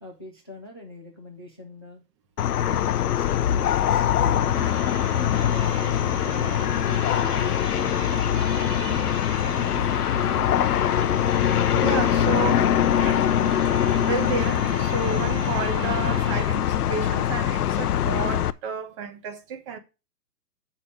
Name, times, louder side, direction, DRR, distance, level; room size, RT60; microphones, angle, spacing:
voice 1, 0.0-2.0 2.6-4.6 5.1-6.6 6.8-8.0, left 2 dB, 20° left, 0.3 m, -43 dB
sound 1, 2.4-18.5, left 10 dB, 70° left, 0.6 m, -23 dB
sound 2, 4.4-16.4, right 6 dB, 35° right, 1.1 m, -38 dB
voice 2, 11.7-13.3 13.7-19.8, right 5 dB, 20° right, 0.6 m, -32 dB
6.8 x 5.6 x 6.3 m
hypercardioid pair, 135°, 47 cm